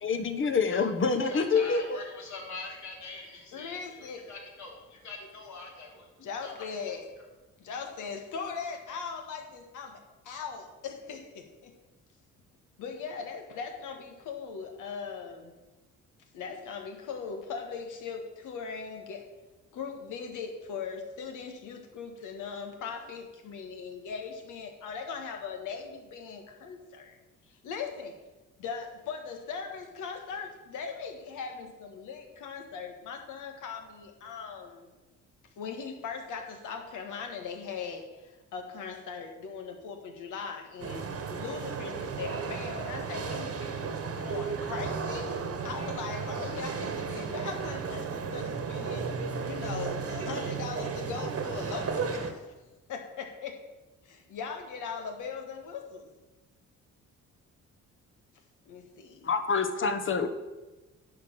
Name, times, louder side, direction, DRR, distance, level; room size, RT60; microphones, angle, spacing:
voice 1, 0.0-1.8 59.2-60.3, left 5 dB, 40° left, 8 dB, 1.1 m, -26 dB
voice 2, 1.2-7.2, left 3 dB, 65° left, -2 dB, 3.4 m, -44 dB
voice 3, 3.5-4.3 6.2-7.0 7.6-11.7 12.8-15.5 16.3-19.3 19.7-27.2 27.5-28.2 28.6-34.9 35.6-45.3 45.6-49.1 49.4-52.5 52.9-53.6 54.0-56.1 58.6-59.3, left 5 dB, 85° left, 4 dB, 1.7 m, -39 dB
sound 1, 40.8-52.3, right 5 dB, 50° right, 1.4 m, -34 dB
10.5 x 4.8 x 7.6 m, 1.1 s
cardioid pair, 90°, 30 cm